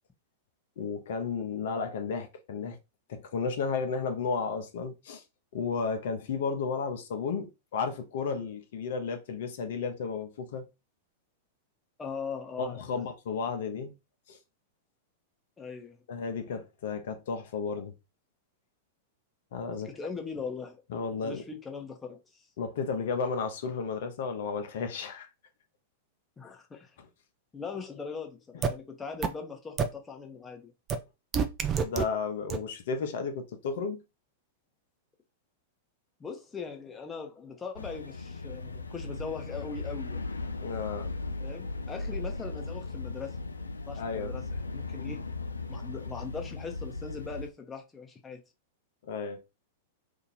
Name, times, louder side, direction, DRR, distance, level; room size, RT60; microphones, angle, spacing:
voice 1, 0.8-2.8 3.1-5.2 5.5-10.6 12.6-13.9 14.3-14.4 16.1-17.9 19.5-19.9 20.9-21.4 22.6-25.3 27.0-27.1 31.8-34.0 40.6-41.1 44.0-44.3 49.0-49.4, left 5 dB, 60° left, 0.8 m, -33 dB
voice 2, 12.0-13.0 15.6-16.0 19.8-20.8 21.2-22.4 26.4-27.0 27.5-30.7 36.2-40.3 41.4-43.4 43.9-44.4 44.7-45.2 45.7-48.4, left 5 dB, 15° left, 0.9 m, -40 dB
sound 1, 28.6-28.7 29.2-29.3 29.8-29.9 30.9-31.0 31.3-32.0 32.5-32.6, right 6 dB, 30° right, 0.5 m, -26 dB
sound 2, 37.8-47.5, left 3 dB, 85° left, 0.3 m, -37 dB
2.8 x 2.7 x 4.1 m
figure-of-eight pair, 95°, 0 cm